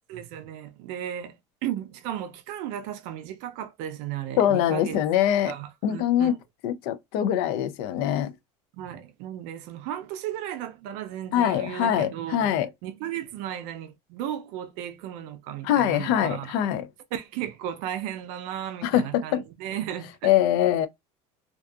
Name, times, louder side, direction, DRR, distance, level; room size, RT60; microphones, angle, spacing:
voice 1, 0.1-5.0 5.5-6.4 8.7-12.5 12.8-16.5 17.1-20.3, right 11 dB, 55° right, 0.5 m, -35 dB
voice 2, 4.4-5.5 5.8-6.3 6.6-8.3 11.3-12.7 15.6-16.9 18.8-19.4 20.2-20.9, left 10 dB, 60° left, 0.4 m, -23 dB
2.6 x 2.3 x 2.3 m
cardioid pair, 175°, 14 cm